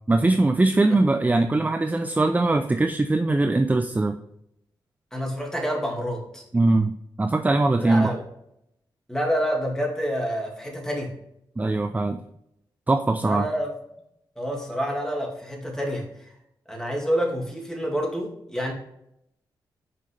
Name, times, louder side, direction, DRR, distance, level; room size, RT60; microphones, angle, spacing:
voice 1, 0.1-4.2 6.5-8.1 11.6-12.2 12.9-13.5, right 2 dB, 20° right, 7 dB, 0.5 m, -21 dB
voice 2, 5.1-6.4 7.8-8.2 9.1-11.1 13.2-13.7 14.4-16.3 16.7-18.7, equal, 5° left, 0 dB, 2.2 m, -28 dB
5.7 x 5.2 x 3.3 m, 0.77 s
cardioid pair, 60°, 8 cm